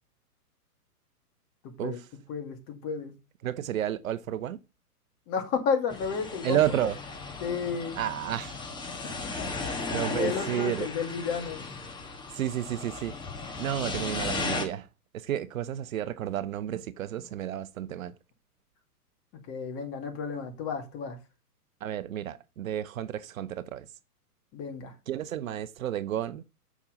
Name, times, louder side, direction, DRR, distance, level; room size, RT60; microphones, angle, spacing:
voice 1, 2.3-3.1 5.3-6.6 7.4-8.0 9.4-9.9 10.1-11.6 19.5-21.2 24.5-24.9, left 6 dB, 30° left, 2.1 m, -32 dB
voice 2, 3.4-4.6 6.4-7.0 8.0-8.6 9.9-10.9 12.3-13.2 13.6-14.9 15.1-18.1 21.8-23.9 25.1-26.4, right 11 dB, 60° right, 0.8 m, -31 dB
sound 1, 5.9-14.6, left 3 dB, 10° left, 1.2 m, -36 dB
8.4 x 6.1 x 3.9 m
hypercardioid pair, 130°, 47 cm